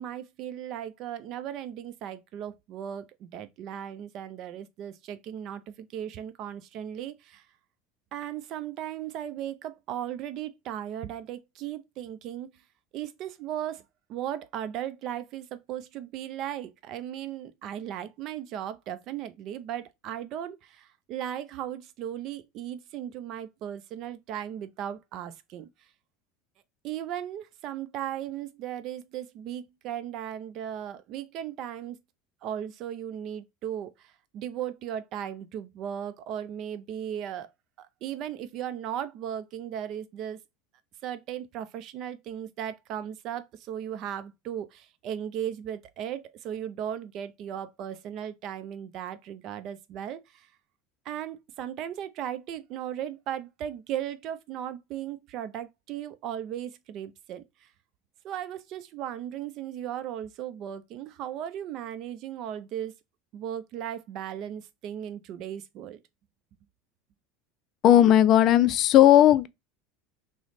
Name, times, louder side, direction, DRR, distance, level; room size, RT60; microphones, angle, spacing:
voice 1, 0.0-7.4 8.1-12.5 12.9-13.8 14.1-25.7 26.8-32.0 32.4-37.5 37.8-40.4 41.0-50.5 51.1-57.7 58.2-62.9 63.3-66.0, right 10 dB, 50° right, 0.4 m, -36 dB
voice 2, 67.8-69.5, left 12 dB, 45° left, 0.3 m, -17 dB
3.0 x 2.1 x 4.1 m
supercardioid pair, 115°, 0 cm